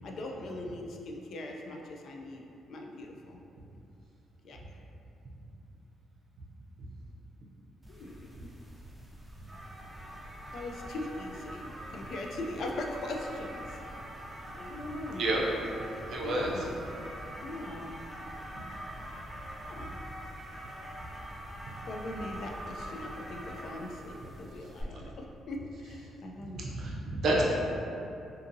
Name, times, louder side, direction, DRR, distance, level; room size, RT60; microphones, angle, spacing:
voice 1, 0.0-3.4 4.4-4.8 7.9-8.5 10.5-13.8 14.4-15.3 16.2-16.8 17.4-18.0 19.6-20.0 21.9-26.7, left 2 dB, 65° left, 1 dB, 0.3 m, -41 dB
sound 1, 7.8-24.8, equal, 10° right, 0.5 m, -44 dB
voice 2, 16.1-16.6 26.5-27.4, right 1 dB, 65° right, -3 dB, 0.5 m, -29 dB
2.6 x 2.5 x 2.6 m, 2.6 s
cardioid pair, 90°, 0 cm